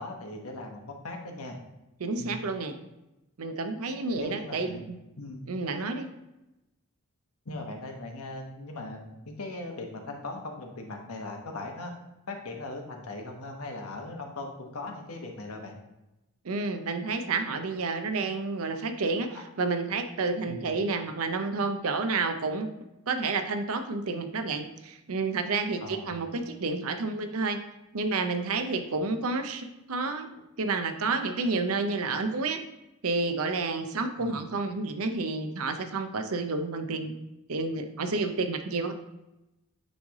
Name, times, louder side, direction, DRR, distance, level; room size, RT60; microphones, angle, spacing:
voice 1, 0.0-1.6 2.2-2.4 4.1-4.8 5.2-5.5 7.4-11.9 12.3-15.7 19.3-19.4 20.5-20.7 25.8-26.2 34.2-34.4, left 2 dB, 80° left, 2 dB, 1.1 m, -39 dB
voice 2, 2.0-2.7 3.4-5.0 5.5-6.1 16.4-22.7 23.1-27.6 27.9-30.3 30.6-32.6 33.0-37.1 37.5-38.9, right 3 dB, 75° right, 7 dB, 0.7 m, -30 dB
9.1 x 3.2 x 3.6 m, 0.95 s
head